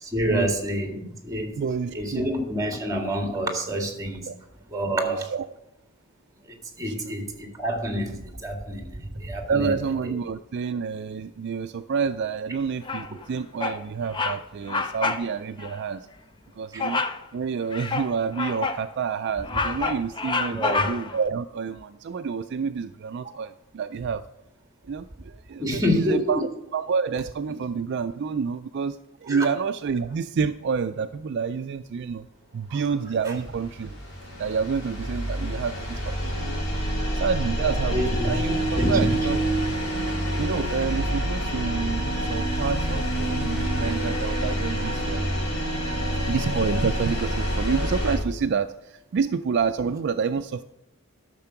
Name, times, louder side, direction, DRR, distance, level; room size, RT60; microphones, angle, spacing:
voice 1, 0.0-1.6 1.9-4.3 4.7-5.3 6.4-9.8 10.0-10.1 16.7-16.9 20.5-20.9 23.2-23.3 25.6-26.4 29.3-29.5 32.7-32.8 37.9-38.3 38.8-39.1, equal, 15° right, 3 dB, 1.9 m, -27 dB
voice 2, 1.6-2.3 4.3-4.4 5.0-5.5 6.8-7.2 9.5-16.1 16.6-17.0 17.3-24.3 24.9-32.3 32.5-34.0 34.4-36.8 37.1-39.4 40.4-45.3 46.3-50.6, right 5 dB, 55° right, 10 dB, 0.3 m, -28 dB
Bird vocalization bird call bird song, 12.8-13.2 13.6-13.8 14.1-14.4 14.7-15.3 15.6-15.7 16.8-17.2 17.7-18.8 19.3-21.2, left 4 dB, 25° left, 0.5 m, -28 dB
sound 1, 33.2-48.2, equal, 65° left, 4.6 m, -27 dB
12.0 x 6.7 x 5.8 m, 0.88 s
head